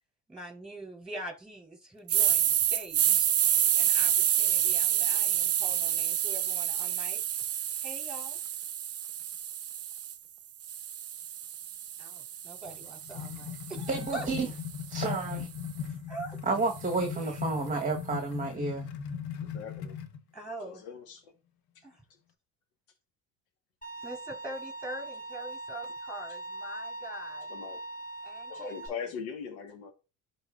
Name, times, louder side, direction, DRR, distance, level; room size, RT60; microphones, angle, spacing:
voice 1, 0.3-3.4 3.8-7.2 7.8-8.4 12.0-14.3 16.1-16.4 17.2-17.4 20.3-20.9 21.8-22.0 24.0-27.6 28.2-29.0, right 1 dB, ahead, 4.2 m, -43 dB
sound 1, 2.1-10.1 10.6-14.8, right 10 dB, 35° right, 0.7 m, -29 dB
sound 2, 12.6-20.2, left 8 dB, 60° left, 1.2 m, -39 dB
voice 2, 13.9-14.5 14.9-15.5 16.5-18.9, right 3 dB, 20° right, 1.2 m, -30 dB
voice 3, 19.5-20.0 20.6-21.3 27.5-27.8 28.5-29.9, left 6 dB, 85° left, 1.5 m, -40 dB
Bowed string instrument, 23.8-28.9, right 2 dB, 20° left, 3.0 m, -41 dB
11.5 x 4.0 x 2.4 m
supercardioid pair, 95°, 42 cm